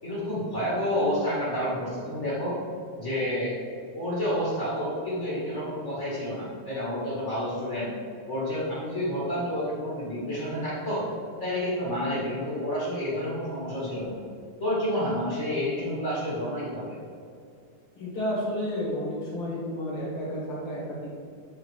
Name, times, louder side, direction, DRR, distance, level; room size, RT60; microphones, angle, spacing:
voice 1, 0.0-2.6 3.0-3.6 3.9-7.9 8.3-11.1 11.4-14.2 14.6-16.9, equal, 30° left, -8 dB, 1.4 m, -29 dB
voice 2, 17.9-21.2, equal, 55° left, -6 dB, 1.7 m, -31 dB
9.1 x 3.8 x 4.7 m, 2.3 s
omnidirectional pair, 4.1 m